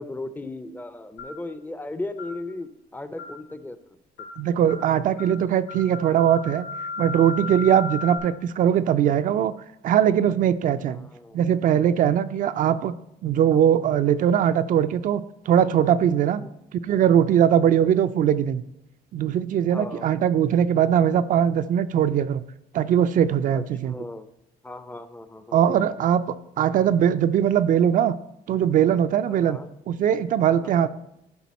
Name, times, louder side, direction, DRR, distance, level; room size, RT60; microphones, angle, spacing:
voice 1, 0.0-3.8 10.9-11.4 16.4-16.5 17.8-17.9 19.7-20.2 23.5-24.3 24.6-25.9 29.3-29.7 30.6-30.9, left 2 dB, 10° left, 12 dB, 0.4 m, -37 dB
sound 1, 1.2-1.5 2.2-2.4 3.2-3.5 4.2-4.4 4.7-4.9 5.2-5.4 5.7-8.2, left 4 dB, 75° left, 3.4 m, -35 dB
voice 2, 4.4-6.7 7.0-9.5 9.8-11.0 11.3-12.9 13.2-16.4 16.8-18.6 19.1-22.4 22.7-23.9 25.5-26.2 26.6-28.1 28.5-29.6 29.9-30.9, right 9 dB, 50° right, 11 dB, 0.4 m, -21 dB
11.5 x 4.1 x 4.1 m, 0.81 s
cardioid pair, 110°, 17 cm